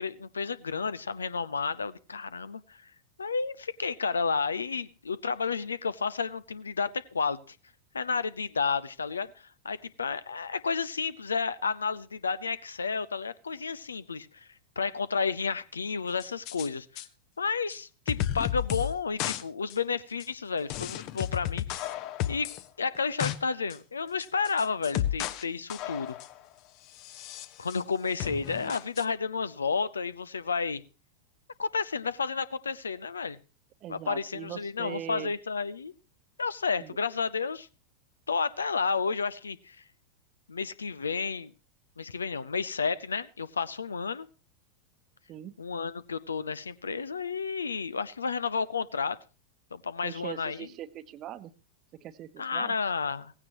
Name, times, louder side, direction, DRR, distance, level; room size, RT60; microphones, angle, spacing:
voice 1, 0.0-2.8 3.2-7.6 7.9-14.5 14.8-17.0 17.4-21.9 22.3-22.5 22.8-26.1 27.6-30.8 31.6-33.4 33.9-35.9 36.4-37.7 38.3-39.8 40.5-41.5 42.0-44.3 45.6-49.2 49.7-50.7 52.4-53.3, left 5 dB, 75° left, 17 dB, 0.7 m, -31 dB
sound 1, 16.2-16.7 17.0-17.1 17.7-17.8 18.1-18.9 19.2-19.4 19.7-19.8 20.2-20.3 20.7-22.6 22.9-23.4 23.7-23.8 24.2-25.4 25.7-26.4 27.0-27.8 28.2-29.0, left 12 dB, 40° left, 0.9 m, -33 dB
voice 2, 33.8-35.3 36.8-37.0 45.3-45.6 50.0-51.5 51.9-52.7, right 11 dB, 35° right, 14 dB, 1.0 m, -41 dB
17.0 x 16.0 x 3.0 m, 0.33 s
figure-of-eight pair, 90°, 0 cm